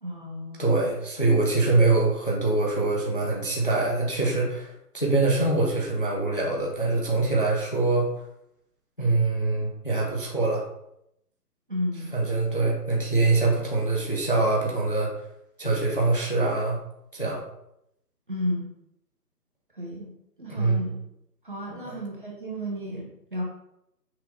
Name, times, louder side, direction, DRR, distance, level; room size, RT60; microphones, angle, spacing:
voice 1, 0.0-0.9 11.7-12.1 18.3-18.7 19.7-20.1 20.4-21.0 21.4-23.4, equal, 30° right, -3 dB, 0.9 m, -32 dB
voice 2, 0.6-8.1 9.0-10.6 12.1-15.1 15.6-16.8 17.1-17.4 20.5-20.9 21.7-22.0, right 3 dB, 35° left, -2 dB, 0.5 m, -24 dB
5.8 x 2.6 x 3.3 m, 0.79 s
hypercardioid pair, 175°, 49 cm